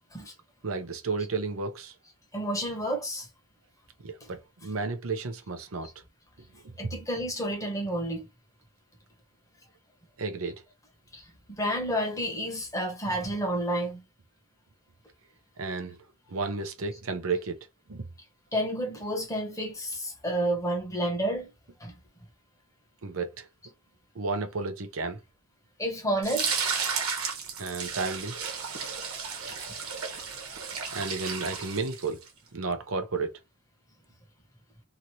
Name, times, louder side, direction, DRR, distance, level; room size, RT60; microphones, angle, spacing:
voice 1, 0.6-1.9 4.0-5.9 6.6-6.7 10.2-10.6 15.6-16.0 16.3-17.6 17.9-18.1 23.0-23.5 24.1-25.2 27.6-28.3 30.9-32.2 32.5-33.3, right 4 dB, 70° right, 0.7 m, -32 dB
voice 2, 2.3-3.3 6.8-8.3 11.1-14.0 18.5-21.5 21.8-21.9 25.8-26.8, right 1 dB, 15° left, 1.1 m, -30 dB
sound 1, 26.2-32.3, right 6 dB, 90° right, 1.1 m, -33 dB
2.9 x 2.7 x 2.9 m
head